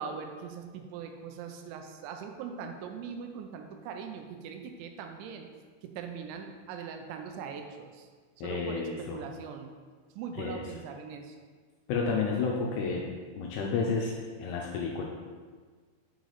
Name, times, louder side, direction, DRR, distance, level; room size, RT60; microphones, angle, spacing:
voice 1, 0.0-5.5 5.8-8.1 8.4-9.7 10.1-11.4, right 6 dB, 85° right, 5 dB, 2.9 m, -41 dB
voice 2, 8.4-9.2 10.4-10.6 11.9-13.1 13.4-15.0, left 4 dB, 80° left, -1 dB, 2.4 m, -31 dB
6.8 x 4.8 x 4.0 m, 1.5 s
omnidirectional pair, 5.2 m